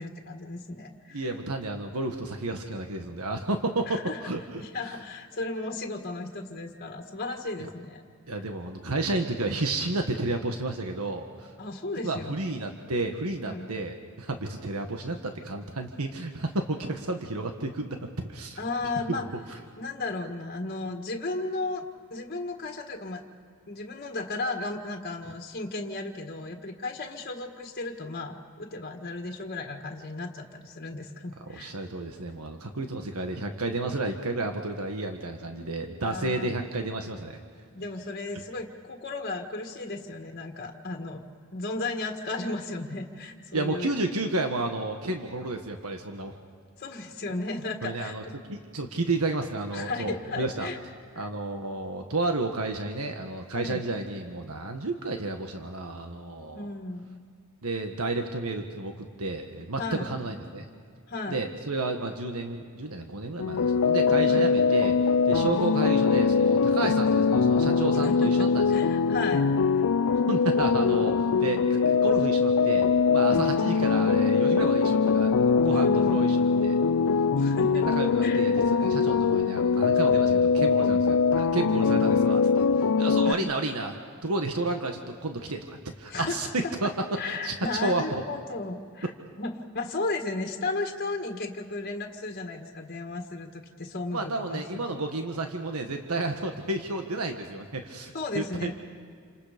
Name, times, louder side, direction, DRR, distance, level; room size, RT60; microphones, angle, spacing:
voice 1, 0.0-1.3 3.9-4.2 4.6-8.0 8.3-8.4 11.6-12.6 13.4-13.7 18.6-19.3 19.8-23.2 23.7-31.7 36.0-36.6 37.7-41.2 41.5-43.9 46.8-48.3 49.7-50.8 51.1-51.3 53.5-53.8 56.5-57.2 59.8-60.1 61.1-61.4 64.2-64.6 65.3-65.6 67.9-69.5 69.7-69.8 73.2-73.4 75.7-76.2 77.4-77.8 78.2-78.4 83.2-83.5 86.1-86.4 86.6-86.7 87.1-89.1 89.4-94.9 98.1-98.7, left 2 dB, 45° left, 3 dB, 1.8 m, -35 dB
voice 2, 1.1-4.6 8.3-11.5 12.0-18.0 18.3-18.6 19.1-19.6 31.5-37.4 43.5-46.4 47.8-50.7 51.2-56.7 57.6-60.7 61.3-65.0 65.2-68.8 70.3-76.8 77.6-83.9 84.2-86.9 87.2-87.5 87.8-88.0 94.1-98.7, right 2 dB, 80° right, 4 dB, 1.5 m, -31 dB
sound 1, 63.4-83.3, left 5 dB, 80° left, 0.5 m, -22 dB
29.0 x 27.0 x 5.2 m, 2.1 s
head